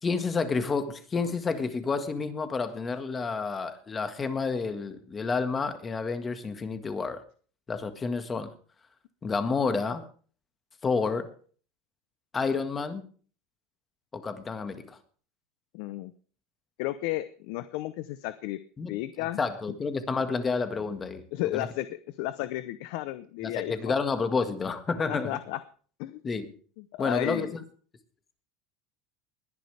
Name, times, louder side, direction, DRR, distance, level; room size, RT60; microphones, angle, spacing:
voice 1, 0.0-7.2 7.7-8.5 9.2-10.1 10.8-11.3 12.3-13.0 14.1-15.0 18.8-19.0 19.4-21.2 21.5-21.7 23.4-25.4 26.2-26.5 27.0-27.5, left 4 dB, 20° left, 9 dB, 1.7 m, -30 dB
voice 2, 15.7-16.1 16.8-18.6 18.9-19.4 21.3-23.7 25.1-25.6 26.0-26.2 26.8-27.6, left 16 dB, 65° left, 13 dB, 0.7 m, -33 dB
21.0 x 10.5 x 3.4 m, 0.41 s
supercardioid pair, 130°, 0 cm